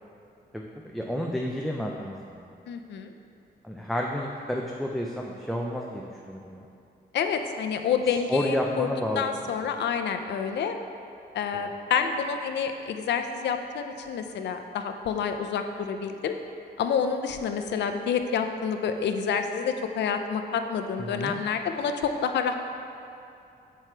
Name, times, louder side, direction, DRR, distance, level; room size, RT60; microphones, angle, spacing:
voice 1, 0.9-2.5 3.6-6.6 8.1-9.2 11.5-11.7 21.0-21.4, equal, ahead, -1 dB, 0.4 m, -31 dB
voice 2, 2.7-3.1 7.1-8.9 9.2-10.8 11.3-16.3 16.8-22.6, left 6 dB, 85° left, 6 dB, 0.5 m, -28 dB
7.7 x 4.6 x 4.5 m, 2.6 s
wide cardioid pair, 160°, 18 cm